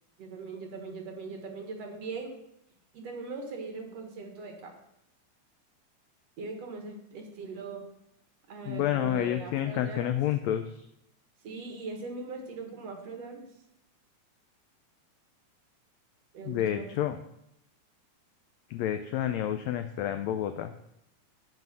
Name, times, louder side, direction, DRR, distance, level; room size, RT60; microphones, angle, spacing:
voice 1, 0.2-2.3 2.9-4.7 6.4-7.8 8.5-10.2 11.4-13.4 16.3-16.9, right 3 dB, 60° right, 3 dB, 2.2 m, -40 dB
voice 2, 8.7-10.6 16.4-17.2 18.7-20.7, left 11 dB, 85° left, 8 dB, 1.5 m, -29 dB
7.9 x 5.6 x 7.4 m, 0.79 s
omnidirectional pair, 3.6 m